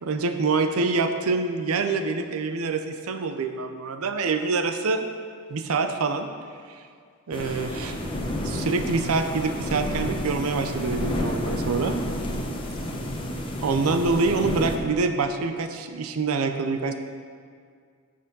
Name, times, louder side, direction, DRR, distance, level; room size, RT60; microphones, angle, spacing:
voice 1, 0.0-5.1 5.5-6.3 6.7-6.8 7.3-8.0 8.4-12.0 13.6-16.9, right 4 dB, 90° right, 7 dB, 0.6 m, -26 dB
sound 1, 7.3-14.8, left 1 dB, 25° left, 0.9 m, -30 dB
7.6 x 6.7 x 5.4 m, 2.1 s
head